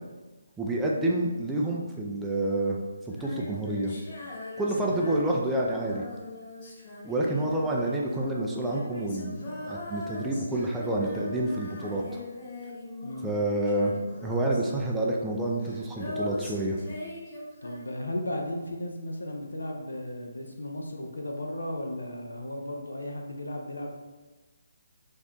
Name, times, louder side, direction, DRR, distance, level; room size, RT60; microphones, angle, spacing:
voice 1, 0.6-2.8 3.1-3.9 4.6-6.0 7.0-12.2 13.2-16.8, right 1 dB, 10° right, -2 dB, 0.3 m, -28 dB
Female singing, 3.1-13.4 13.7-18.1, left 2 dB, 35° left, 0.8 m, -41 dB
voice 2, 4.7-5.0 13.0-13.3 17.6-24.0, left 1 dB, 90° left, 1 dB, 0.5 m, -35 dB
2.5 x 2.1 x 3.6 m, 1.2 s
figure-of-eight pair, 150°, 0 cm